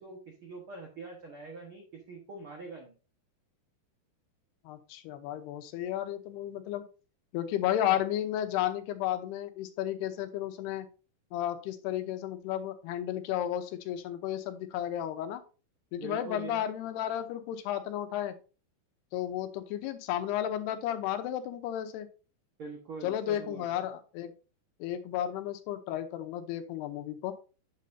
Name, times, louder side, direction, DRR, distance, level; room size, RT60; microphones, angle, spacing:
voice 1, 0.0-2.9 16.0-16.6 22.6-23.8, right 4 dB, 90° right, 1 dB, 1.1 m, -44 dB
voice 2, 4.7-6.9 7.3-10.9 11.3-15.4 15.9-18.4 19.1-22.1 23.0-24.3 24.8-27.3, left 11 dB, 85° left, 8 dB, 2.9 m, -33 dB
8.4 x 8.1 x 2.7 m, 0.34 s
omnidirectional pair, 4.7 m